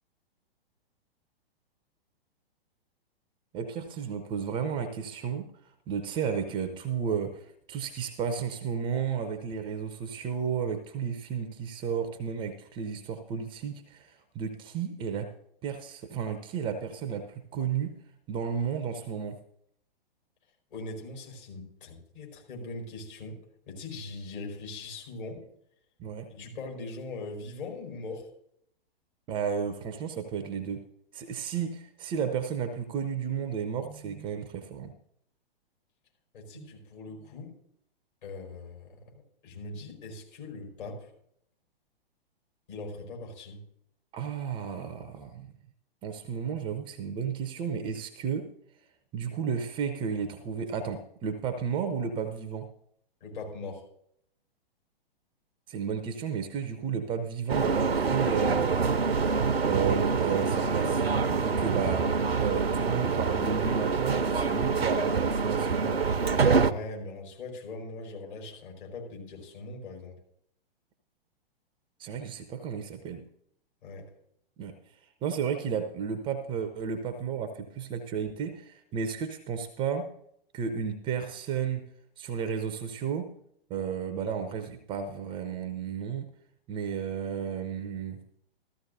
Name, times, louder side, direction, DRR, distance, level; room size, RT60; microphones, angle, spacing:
voice 1, 3.5-5.5 5.9-15.3 15.6-18.0 18.3-19.4 26.0-26.3 29.3-30.9 31.1-34.9 36.5-36.7 44.1-45.5 46.0-48.5 49.1-52.7 55.7-58.7 59.6-66.1 72.0-73.2 74.6-80.1 80.5-81.9 82.2-83.3 83.7-86.3 86.7-88.2, right 7 dB, 15° right, 9 dB, 0.5 m, -33 dB
voice 2, 20.7-23.4 23.7-25.4 26.3-28.3 36.3-37.6 38.2-41.1 42.7-43.6 53.2-53.9 66.7-70.2 73.8-74.1, left 3 dB, 60° left, 0 dB, 5.0 m, -41 dB
sound 1, 57.5-66.7, right 5 dB, 85° right, 0.7 m, -26 dB
14.0 x 14.0 x 2.7 m, 0.71 s
figure-of-eight pair, 115°, 30 cm